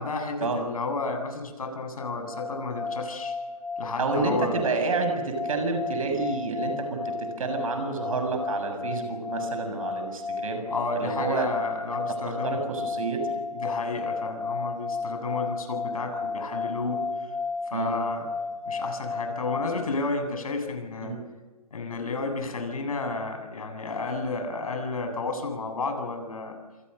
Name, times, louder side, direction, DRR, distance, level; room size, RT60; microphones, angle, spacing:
voice 1, 0.0-3.3 3.8-4.6 10.7-12.6 13.6-17.3 17.7-18.3 18.7-21.1 21.7-26.5, left 3 dB, 65° left, 5 dB, 7.6 m, -32 dB
sound 1, 2.0-19.8, left 4 dB, 5° left, 4.0 m, -33 dB
voice 2, 4.0-10.6 10.9-11.5 12.2-13.2 17.7-17.9 21.0-21.2, right 3 dB, 60° right, 6 dB, 7.2 m, -29 dB
28.5 x 26.5 x 6.7 m, 1.3 s
figure-of-eight pair, 140°, 20 cm